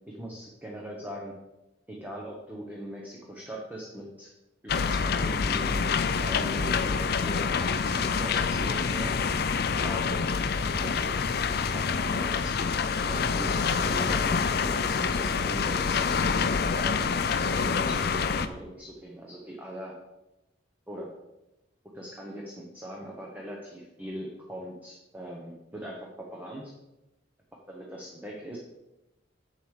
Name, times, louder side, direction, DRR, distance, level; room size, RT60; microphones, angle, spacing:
voice 1, 0.1-1.3 1.9-4.3 4.6-9.2 9.8-10.3 10.6-11.2 11.6-16.0 16.7-19.9 20.9-21.1 21.9-26.7 27.7-28.6, equal, 10° right, -2 dB, 1.1 m, -41 dB
sound 1, 4.7-18.5, left 5 dB, 55° left, 0.5 m, -27 dB
7.4 x 6.9 x 4.9 m, 0.95 s
head